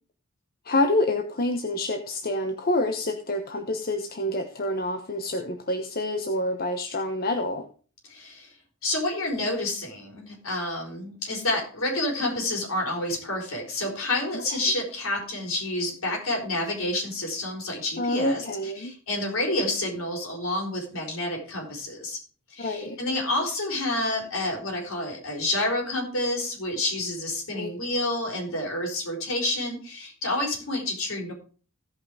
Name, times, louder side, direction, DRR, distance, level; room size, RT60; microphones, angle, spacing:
voice 1, 0.6-7.7 18.0-19.0 22.6-23.0 27.5-27.7, left 1 dB, 45° left, 6 dB, 1.0 m, -27 dB
voice 2, 8.0-8.5 8.8-22.2 22.5-31.3, left 1 dB, 70° left, 0 dB, 5.0 m, -29 dB
16.0 x 5.8 x 4.8 m, 0.39 s
head